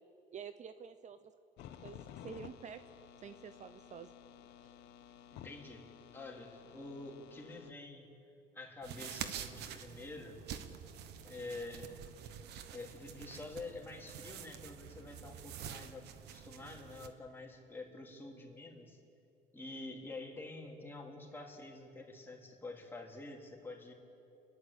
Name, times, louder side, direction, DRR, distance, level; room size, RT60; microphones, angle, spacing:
voice 1, 0.3-1.3 1.8-2.8 3.2-4.1, right 7 dB, 45° right, 11 dB, 0.7 m, -48 dB
sound 1, 1.6-7.7, left 9 dB, 85° left, 1.0 m, -54 dB
voice 2, 5.3-5.9 6.1-8.1 8.5-10.4 11.2-11.9 12.7-16.0 16.3-19.0 19.5-23.9, left 2 dB, 10° left, -1 dB, 3.2 m, -47 dB
sound 2, 8.8-17.1, right 9 dB, 80° right, 1.2 m, -47 dB
29.5 x 11.0 x 8.3 m, 2.8 s
cardioid pair, 110°, 17 cm